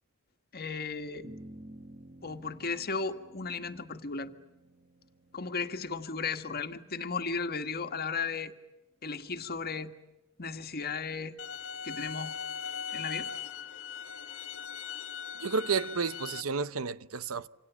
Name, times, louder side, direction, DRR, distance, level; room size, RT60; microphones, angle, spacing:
voice 1, 0.5-1.3 2.2-4.3 5.3-8.5 9.0-9.9 10.4-11.3 11.8-12.3 12.9-13.3, left 4 dB, 45° left, 1.7 m, -35 dB
sound 1, 1.2-7.8, right 1 dB, 30° right, 2.2 m, -53 dB
sound 2, 11.4-16.4, left 7 dB, 70° left, 1.6 m, -39 dB
voice 2, 15.3-17.5, right 5 dB, 80° right, 0.9 m, -31 dB
28.5 x 27.0 x 7.1 m
head